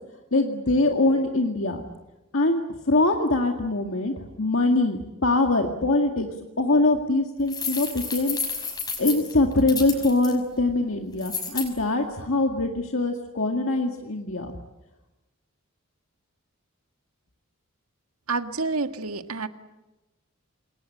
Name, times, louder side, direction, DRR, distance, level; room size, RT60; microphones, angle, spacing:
voice 1, 0.3-1.8 2.3-2.6 2.9-6.3 6.6-14.5, left 2 dB, 65° left, 3 dB, 2.0 m, -23 dB
sound 1, 7.5-10.3 11.2-11.7, left 5 dB, 20° left, 5.7 m, -31 dB
voice 2, 18.3-19.5, right 3 dB, 90° right, 8 dB, 1.7 m, -28 dB
28.0 x 21.5 x 8.7 m, 1.0 s
head